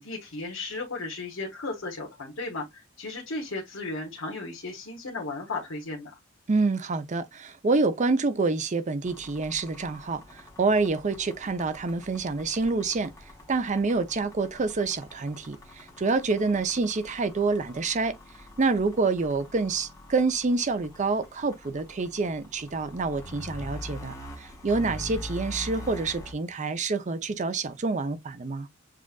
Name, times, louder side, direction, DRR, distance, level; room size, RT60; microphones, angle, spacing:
voice 1, 0.0-6.2, left 3 dB, 75° left, 1.2 m, -35 dB
voice 2, 6.5-13.1 13.5-18.1 18.6-28.7, right 3 dB, 35° right, 0.5 m, -27 dB
sound 1, 9.0-26.3, left 1 dB, 15° left, 1.2 m, -44 dB
7.3 x 2.5 x 2.3 m
head